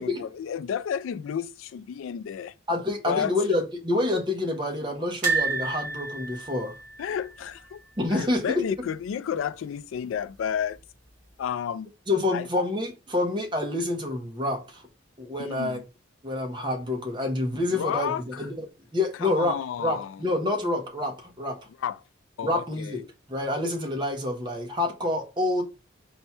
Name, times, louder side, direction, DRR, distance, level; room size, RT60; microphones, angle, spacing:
voice 1, 0.0-2.5 3.1-3.3 7.0-7.8 8.1-10.8 11.4-11.9 12.3-12.5 15.4-15.8 17.7-18.5 19.2-20.3 21.8-22.0 22.4-23.0, left 8 dB, 80° left, 0.3 m, -31 dB
voice 2, 2.7-6.7 8.0-8.6 12.1-14.8 15.2-15.8 16.2-21.6 22.4-23.0 23.3-25.6, left 2 dB, 25° right, 0.8 m, -28 dB
sound 1, 5.2-8.3 8.5-8.7 9.0-9.1 10.3-10.9 11.4-11.5, right 4 dB, 40° right, 1.5 m, -30 dB
4.2 x 2.2 x 4.2 m
head